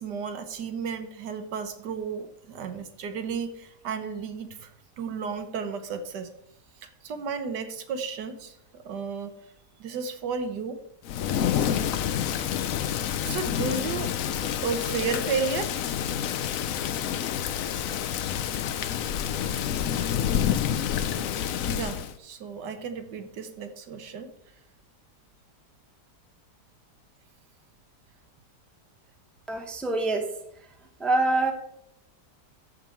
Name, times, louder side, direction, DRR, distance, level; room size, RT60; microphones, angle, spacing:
voice 1, 0.0-4.7 5.0-6.3 6.8-8.6 8.8-9.3 9.8-10.8 13.2-14.1 14.6-15.7 21.7-24.3, right 5 dB, 85° right, 8 dB, 1.6 m, -33 dB
Thunder / Rain, 11.0-22.1, left 9 dB, 65° left, 0.9 m, -28 dB
voice 2, 29.5-30.2 31.0-31.5, right 2 dB, ahead, 2 dB, 0.8 m, -25 dB
13.5 x 5.4 x 4.4 m, 0.76 s
omnidirectional pair, 1.8 m